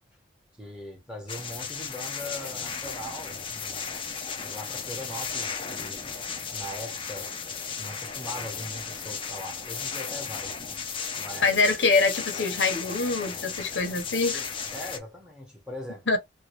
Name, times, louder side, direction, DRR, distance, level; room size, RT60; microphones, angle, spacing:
voice 1, 0.6-3.9 4.4-6.1 6.5-7.3 7.8-10.5 11.2-11.6 14.7-16.1, left 1 dB, 5° right, 1.2 m, -40 dB
sound 1, 1.3-15.0, left 6 dB, 30° left, 0.6 m, -35 dB
voice 2, 11.4-14.4 16.1-16.2, left 4 dB, 85° left, 1.1 m, -24 dB
3.1 x 2.5 x 3.1 m
head